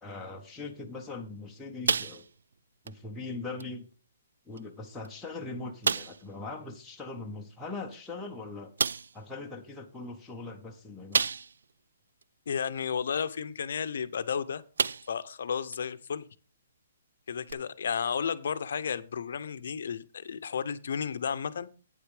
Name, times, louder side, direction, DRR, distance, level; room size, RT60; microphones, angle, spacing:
voice 1, 0.0-2.3 2.8-3.9 4.5-8.7 9.1-11.2, left 3 dB, 5° left, -2 dB, 0.6 m, -40 dB
sound 1, 1.9-2.5 2.9-3.0 3.6-3.7 4.6-4.7 5.0-5.1 5.8-6.3 7.9-8.0 8.8-9.2 11.1-11.7 12.2-12.3 14.1-14.3 14.8-15.3 15.7-15.8 17.5-17.6, right 5 dB, 85° right, 0.4 m, -30 dB
voice 2, 12.5-14.6 15.1-16.3 17.3-21.7, left 7 dB, 55° left, 13 dB, 0.6 m, -33 dB
8.9 x 6.8 x 4.9 m, 0.36 s
hypercardioid pair, 180°, 0 cm